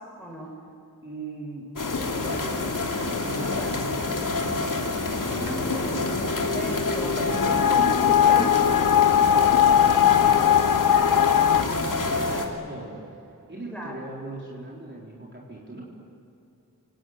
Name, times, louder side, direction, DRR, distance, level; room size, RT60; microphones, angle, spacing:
voice 1, 0.2-0.5 3.6-3.7 5.3-5.8 6.2-6.3 6.5-8.8 12.3-12.5 13.7-13.9, right 1 dB, 5° left, -1 dB, 7.2 m, -35 dB
voice 2, 1.0-1.7 2.1-6.1 7.0-7.8 9.0-13.2 13.5-15.9, right 2 dB, 35° right, -4 dB, 4.2 m, -40 dB
sound 1, 1.8-12.5, left 3 dB, 70° left, 2.9 m, -27 dB
sound 2, 7.3-11.6, left 10 dB, 90° left, 0.7 m, -19 dB
28.5 x 18.5 x 9.6 m, 2.8 s
wide cardioid pair, 80°, 33 cm